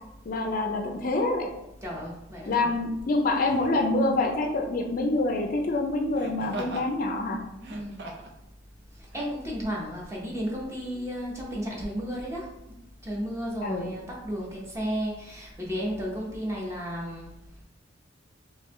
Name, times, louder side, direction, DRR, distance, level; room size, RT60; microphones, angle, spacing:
voice 1, 0.3-1.5 2.5-7.4 13.6-13.9, left 2 dB, 45° left, 2 dB, 0.4 m, -26 dB
voice 2, 1.8-2.7 7.7-8.0 8.9-12.5 13.0-17.3, equal, 15° right, -3 dB, 0.8 m, -33 dB
Laughter, 1.9-2.1 3.4-3.8 6.1-6.9 7.5-8.4 9.1-9.3, right 2 dB, 60° right, 0.6 m, -40 dB
3.7 x 2.9 x 3.1 m, 0.86 s
head